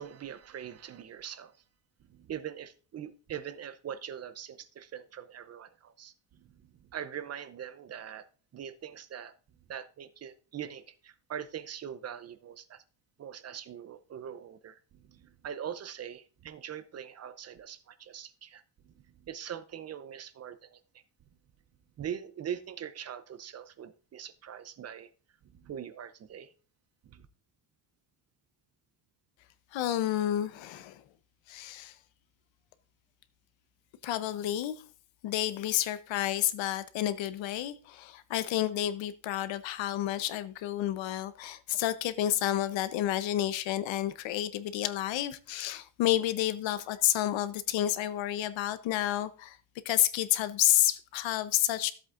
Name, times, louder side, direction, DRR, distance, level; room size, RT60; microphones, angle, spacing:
voice 1, 0.0-1.5 2.1-8.2 8.5-9.3 9.7-12.8 13.2-20.8 22.0-25.1 25.5-26.5 27.0-27.3, right 9 dB, 35° right, 0.5 m, -42 dB
voice 2, 29.7-31.0 31.5-32.0 34.0-34.8 35.2-49.6 49.8-51.9, left 13 dB, 80° left, 0.9 m, -30 dB
13.5 x 7.9 x 2.5 m
cardioid pair, 160°, 44 cm